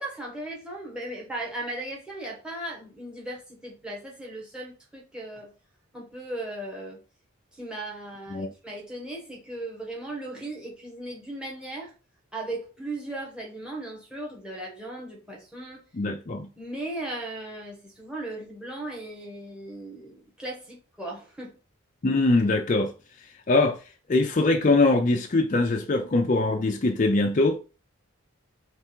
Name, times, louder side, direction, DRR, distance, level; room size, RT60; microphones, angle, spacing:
voice 1, 0.0-5.5 5.9-7.0 7.5-11.9 12.3-15.8 16.6-21.6, right 1 dB, 5° right, 1.4 m, -37 dB
voice 2, 15.9-16.5 22.0-22.9 23.5-23.8 24.1-27.6, left 2 dB, 35° left, 0.4 m, -22 dB
3.5 x 3.3 x 4.5 m
head